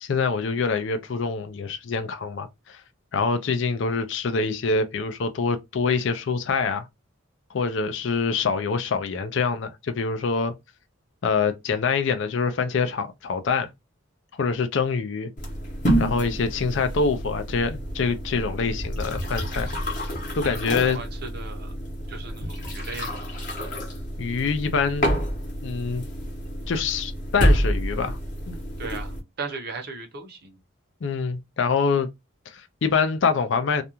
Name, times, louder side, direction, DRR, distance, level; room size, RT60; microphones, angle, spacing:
voice 1, 0.0-2.8 3.1-6.9 7.5-10.5 11.2-13.7 14.4-15.3 16.0-19.7 20.4-21.0 24.2-25.2 25.6-26.0 26.7-28.2 28.5-28.6 31.0-32.1 32.5-33.8, left 5 dB, 60° left, 0.4 m, -25 dB
sound 1, 15.4-29.2, equal, 40° left, 0.9 m, -28 dB
voice 2, 20.4-21.7 22.1-23.2 28.8-30.6, right 4 dB, 50° right, 0.6 m, -37 dB
2.5 x 2.2 x 2.9 m
head